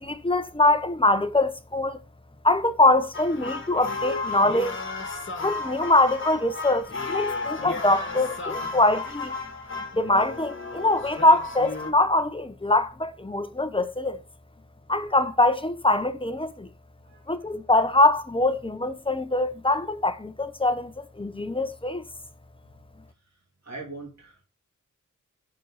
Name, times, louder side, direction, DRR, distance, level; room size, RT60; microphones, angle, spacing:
voice 1, 0.0-2.0 2.4-4.8 5.4-9.4 9.9-14.2 14.9-16.7 17.3-22.0, left 2 dB, 15° left, 0.8 m, -23 dB
sound 1, 3.1-11.9, left 3 dB, 40° left, 1.4 m, -33 dB
voice 2, 17.0-17.5 23.6-24.4, right 3 dB, 55° right, 3.0 m, -42 dB
6.3 x 4.5 x 5.6 m
wide cardioid pair, 75°, 31 cm